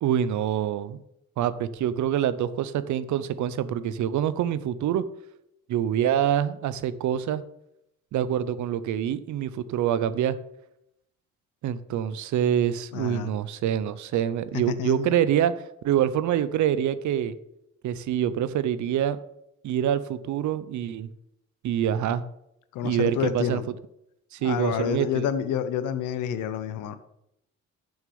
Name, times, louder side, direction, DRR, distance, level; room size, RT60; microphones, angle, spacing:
voice 1, 0.0-1.0 1.4-5.0 5.7-7.4 8.1-10.4 11.6-15.5 15.8-17.4 17.8-19.2 19.6-21.1 21.6-22.2 22.8-23.6 24.3-25.3, right 10 dB, 70° right, 15 dB, 0.7 m, -25 dB
voice 2, 12.9-13.3 14.5-15.2 22.7-23.6 24.4-27.0, left 8 dB, 90° left, 12 dB, 0.8 m, -28 dB
7.2 x 6.3 x 6.9 m, 0.81 s
cardioid pair, 90°, 30 cm